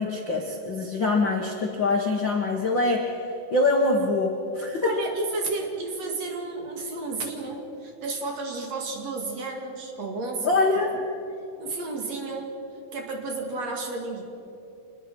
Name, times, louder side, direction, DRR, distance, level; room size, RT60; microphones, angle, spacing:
voice 1, 0.0-3.1 3.5-4.9 10.4-10.9, left 3 dB, 50° left, 1 dB, 1.4 m, -24 dB
voice 2, 4.8-10.5 10.9-11.0 11.6-12.6 12.9-14.2, right 3 dB, 50° right, 2 dB, 2.9 m, -32 dB
25.5 x 20.5 x 6.2 m, 2.9 s
omnidirectional pair, 4.2 m